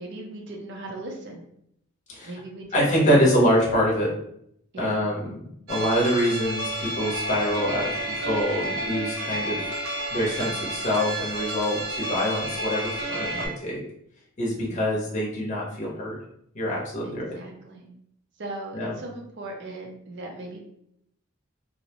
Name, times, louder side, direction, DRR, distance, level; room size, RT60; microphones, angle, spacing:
voice 1, 0.0-1.5 2.2-3.1 4.7-5.2 13.3-13.8 14.6-15.0 17.0-18.0 18.4-20.6, right 2 dB, 50° right, 1 dB, 0.4 m, -39 dB
voice 2, 2.7-4.1 4.8-5.4 5.7-9.6 10.1-13.8 14.4-16.2 16.5-17.4 18.7-18.9, equal, 35° left, -4 dB, 0.6 m, -25 dB
sound 1, 5.7-13.5, right 1 dB, 80° right, 0.8 m, -31 dB
2.5 x 2.0 x 2.8 m, 0.73 s
head